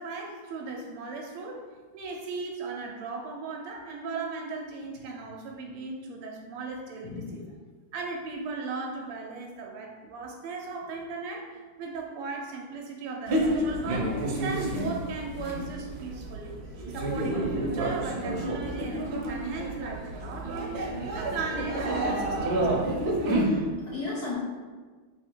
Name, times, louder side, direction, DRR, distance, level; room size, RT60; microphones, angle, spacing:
voice 1, 0.0-1.7 1.9-7.4 7.9-16.6 16.9-20.9 21.1-22.8, right 4 dB, 90° right, 1 dB, 1.5 m, -37 dB
voice 2, 7.0-7.5 23.3-24.3, left 3 dB, 70° left, -4 dB, 0.9 m, -36 dB
sound 1, 13.3-23.4, right 1 dB, 65° right, 1.0 m, -30 dB
3.7 x 2.7 x 4.4 m, 1.4 s
omnidirectional pair, 2.3 m